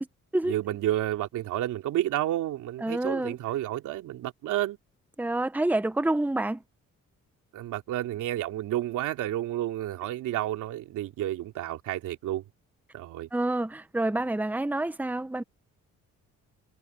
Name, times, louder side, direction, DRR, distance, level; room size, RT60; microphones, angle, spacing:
voice 1, 0.4-4.8 7.5-12.4 12.9-13.3, right 13 dB, 90° right, 3.0 m, -30 dB
voice 2, 2.8-3.3 5.2-6.6 13.3-15.4, right 2 dB, 5° right, 1.1 m, -27 dB
cardioid pair, 90°, 30 cm